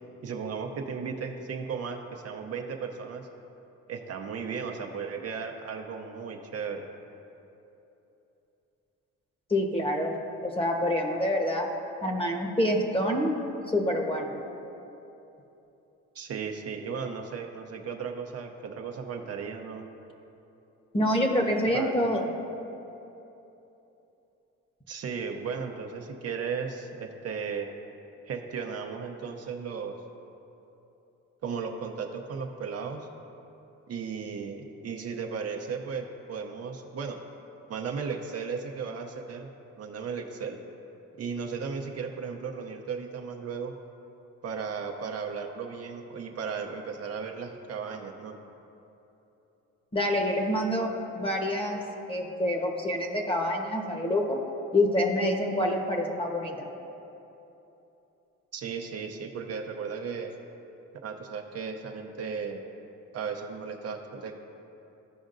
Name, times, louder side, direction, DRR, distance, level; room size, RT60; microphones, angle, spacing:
voice 1, 0.2-3.3 3.9-6.9 16.1-19.9 21.6-21.9 24.9-27.7 28.3-30.0 31.4-33.1 33.9-37.2 37.7-39.5 39.8-40.6 41.2-43.7 44.4-48.4 58.5-60.3 61.0-62.6 63.1-64.4, right 5 dB, 55° right, 3 dB, 0.7 m, -35 dB
voice 2, 9.5-10.1 10.4-11.6 12.0-13.3 13.7-14.4 20.9-22.2 49.9-51.8 52.1-54.4 54.7-56.7, left 1 dB, 20° left, 1 dB, 1.1 m, -26 dB
14.5 x 5.1 x 2.6 m, 3.0 s
cardioid pair, 90°, 30 cm